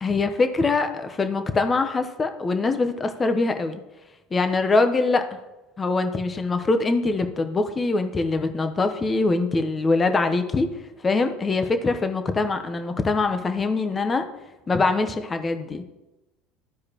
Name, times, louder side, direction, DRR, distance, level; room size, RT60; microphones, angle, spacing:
voice 1, 0.0-3.8 4.3-5.2 5.8-10.7 11.0-14.3 14.7-15.8, left 3 dB, 25° left, 7 dB, 0.8 m, -23 dB
13.5 x 4.7 x 2.9 m, 1.0 s
supercardioid pair, 95°, 0 cm